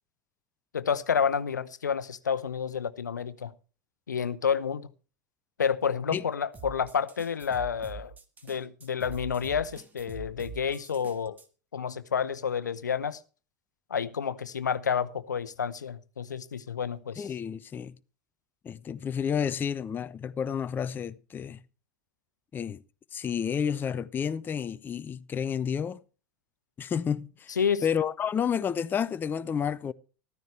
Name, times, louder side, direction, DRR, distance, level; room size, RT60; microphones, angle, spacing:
voice 1, 0.7-3.5 4.1-4.9 5.6-8.1 8.4-11.4 11.7-13.2 13.9-17.3 27.6-27.8, left 7 dB, 75° left, 0.8 m, -29 dB
sound 1, 6.5-11.5, right 6 dB, 15° right, 1.7 m, -45 dB
voice 2, 17.2-17.9 18.6-21.6 22.5-22.8 23.1-26.0 26.8-27.6 27.8-29.9, left 7 dB, 20° left, 0.6 m, -30 dB
14.5 x 13.5 x 3.2 m
figure-of-eight pair, 85°, 10 cm